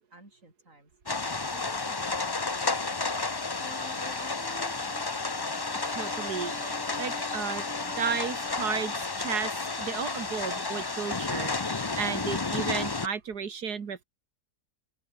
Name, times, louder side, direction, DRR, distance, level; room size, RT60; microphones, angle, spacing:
voice 1, 0.1-0.9 1.2-5.0, right 2 dB, 55° right, 6.7 m, -55 dB
sound 1, 1.1-13.1, left 3 dB, 25° left, 0.6 m, -32 dB
sound 2, 3.6-8.9, left 1 dB, 5° left, 1.0 m, -46 dB
voice 2, 5.9-14.0, right 6 dB, 80° right, 2.5 m, -34 dB
open air
omnidirectional pair, 1.7 m